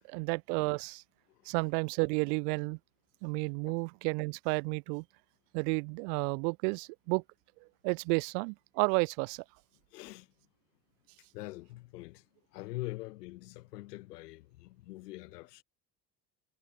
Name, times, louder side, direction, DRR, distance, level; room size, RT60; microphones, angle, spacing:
voice 1, 0.1-1.0 1.5-2.8 3.2-5.0 5.5-7.2 7.8-9.4, right 37 dB, 80° right, 1.7 m, -31 dB
voice 2, 9.9-10.3 11.2-15.6, left 19 dB, 90° left, 3.1 m, -44 dB
hypercardioid pair, 70°, 46 cm